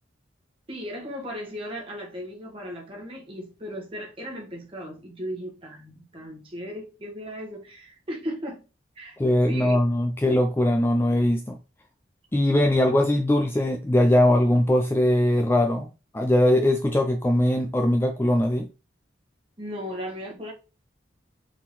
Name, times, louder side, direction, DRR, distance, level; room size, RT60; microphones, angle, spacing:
voice 1, 0.7-8.6 9.0-9.2 9.5-9.8 19.6-20.5, equal, 30° right, 1.2 m, -36 dB
voice 2, 9.2-11.6 12.3-15.9 16.1-18.7, left 1 dB, 10° left, 0.3 m, -21 dB
4.2 x 3.7 x 3.0 m
head